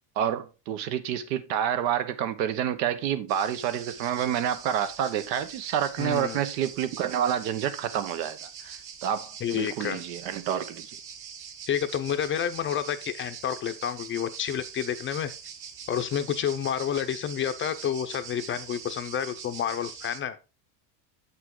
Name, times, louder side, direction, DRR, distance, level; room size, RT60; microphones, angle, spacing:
voice 1, 0.2-8.8 9.0-10.9, right 9 dB, 90° right, 1.3 m, -28 dB
sound 1, 3.3-20.2, right 7 dB, 50° right, 1.5 m, -43 dB
voice 2, 6.0-6.4 9.4-10.0 11.7-15.3 15.9-20.4, left 9 dB, 25° left, 0.5 m, -29 dB
7.8 x 6.0 x 3.7 m
supercardioid pair, 140°, 50 cm